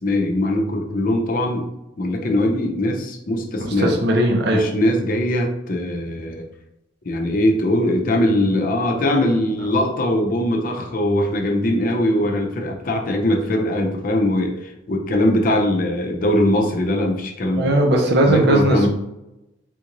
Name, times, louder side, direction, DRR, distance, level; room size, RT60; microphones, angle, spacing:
voice 1, 0.0-1.7 2.0-4.0 4.5-6.4 7.0-17.7 18.3-18.9, left 1 dB, 50° left, 2 dB, 0.6 m, -21 dB
voice 2, 3.6-4.7 17.5-18.9, right 1 dB, 60° right, 2 dB, 0.6 m, -18 dB
3.5 x 2.5 x 2.9 m, 0.91 s
head